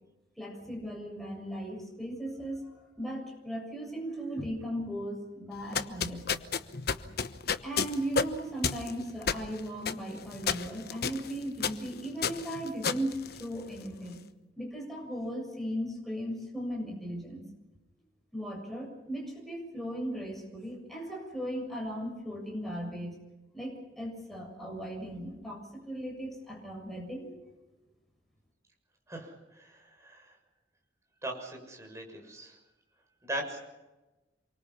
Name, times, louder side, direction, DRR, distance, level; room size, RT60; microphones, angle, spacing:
voice 1, 0.4-6.3 7.6-14.2 14.6-17.5 18.3-23.2 23.5-27.3, equal, ahead, -1 dB, 7.2 m, -37 dB
sound 1, 5.6-13.9, left 6 dB, 60° left, 1.1 m, -33 dB
voice 2, 29.1-30.4 31.2-32.6 33.2-33.6, right 1 dB, 15° right, 1 dB, 6.6 m, -40 dB
28.5 x 24.0 x 5.8 m, 1.1 s
head